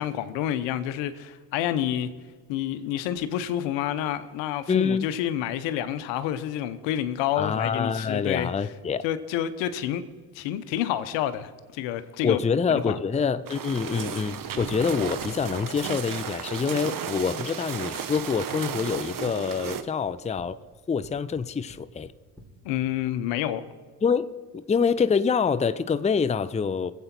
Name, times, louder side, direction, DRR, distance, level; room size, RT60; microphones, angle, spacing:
voice 1, 0.0-2.1 2.5-8.5 9.0-10.0 10.3-12.4 12.7-13.0 22.6-23.6, left 11 dB, 80° left, 0.9 m, -28 dB
voice 2, 4.7-5.1 7.4-9.0 12.2-20.6 20.9-22.1 24.0-24.3 24.5-26.9, left 6 dB, 15° left, 0.5 m, -26 dB
sound 1, 13.5-19.8, right 8 dB, 45° right, 1.2 m, -34 dB
sound 2, 20.0-22.9, right 1 dB, ahead, 3.6 m, -50 dB
22.0 x 8.2 x 4.4 m
hypercardioid pair, 60°, 45 cm